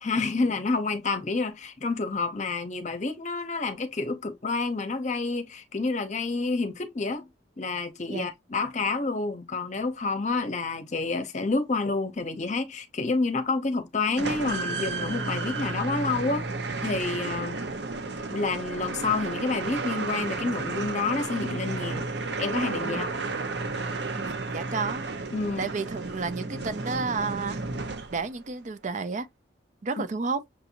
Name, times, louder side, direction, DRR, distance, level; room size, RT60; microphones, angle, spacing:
voice 1, 0.0-7.3 7.6-16.5 16.8-17.6 18.3-22.1 22.4-23.1 25.3-25.7, left 3 dB, 40° left, 0.7 m, -29 dB
sound 1, 14.2-28.4, right 3 dB, 65° right, 0.8 m, -32 dB
voice 2, 24.2-25.1 25.6-27.6 28.1-29.3 29.8-30.4, right 4 dB, 40° right, 0.4 m, -31 dB
6.5 x 2.7 x 2.8 m
head